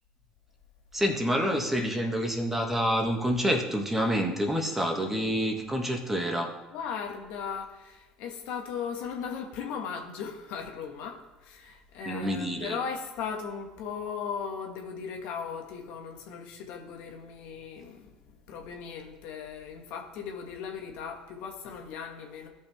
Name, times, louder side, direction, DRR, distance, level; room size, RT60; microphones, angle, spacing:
voice 1, 0.9-6.5 12.1-12.8, equal, 10° right, 2 dB, 1.8 m, -28 dB
voice 2, 6.7-22.5, left 6 dB, 65° left, 2 dB, 1.9 m, -37 dB
17.0 x 5.6 x 3.6 m, 1.1 s
hypercardioid pair, 80°, 3 cm